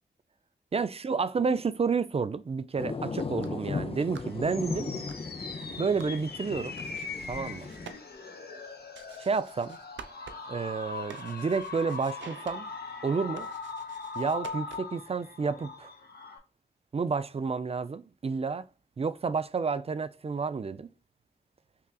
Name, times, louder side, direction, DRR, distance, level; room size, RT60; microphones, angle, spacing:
voice 1, 0.7-5.1 5.8-6.8 7.3-7.7 9.2-9.8 10.5-12.7 13.0-13.5 14.2-15.9 16.9-18.7 19.0-20.9, right 5 dB, 35° right, 0.3 m, -30 dB
sound 1, 2.8-7.9, left 4 dB, 30° left, 0.5 m, -37 dB
sound 2, 3.2-15.1, right 7 dB, 90° right, 0.5 m, -52 dB
sound 3, 4.0-16.4, left 4 dB, 55° left, 1.0 m, -41 dB
5.5 x 2.4 x 2.2 m
cardioid pair, 55°, 19 cm